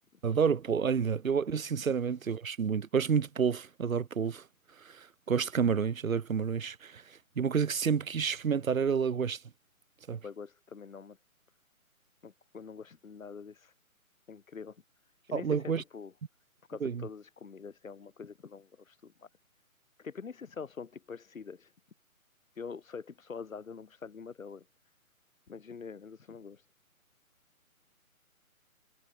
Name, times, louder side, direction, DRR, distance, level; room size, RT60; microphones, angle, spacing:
voice 1, 0.2-4.4 4.8-9.4 10.1-10.2 15.3-15.8 16.8-17.0, right 6 dB, 70° right, 1.6 m, -29 dB
voice 2, 10.2-11.2 12.2-13.7 14.3-14.8 15.3-16.1 16.7-19.3 20.0-21.7 22.5-24.6 25.5-26.6, left 5 dB, 70° left, 3.2 m, -45 dB
figure-of-eight pair, 150°, 43 cm